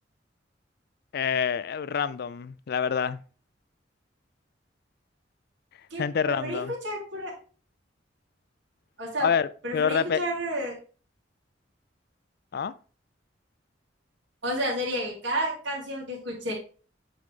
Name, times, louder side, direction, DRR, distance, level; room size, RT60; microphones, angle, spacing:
voice 1, 1.1-3.2 6.0-6.7 9.2-10.2 12.5-12.7, left 7 dB, 60° left, 0.4 m, -27 dB
voice 2, 5.9-7.3 9.0-9.3 9.6-10.7 14.4-16.5, right 1 dB, 80° right, 2.8 m, -31 dB
7.9 x 4.0 x 3.7 m
head